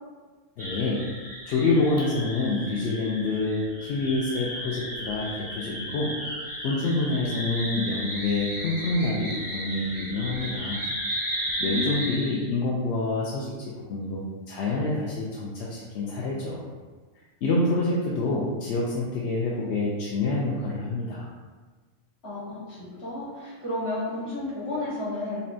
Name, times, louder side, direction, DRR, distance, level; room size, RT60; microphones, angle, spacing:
voice 1, 0.6-1.0 1.4-6.1 6.6-10.8 11.2-13.5 13.9-16.6 17.4-21.3, left 2 dB, 65° left, -4 dB, 0.8 m, -27 dB
sound 1, 0.6-12.5, equal, 25° right, 0.5 m, -34 dB
voice 2, 11.6-12.3 22.2-25.4, left 2 dB, 50° left, -10 dB, 1.8 m, -32 dB
5.3 x 2.2 x 2.6 m, 1.4 s
omnidirectional pair, 1.3 m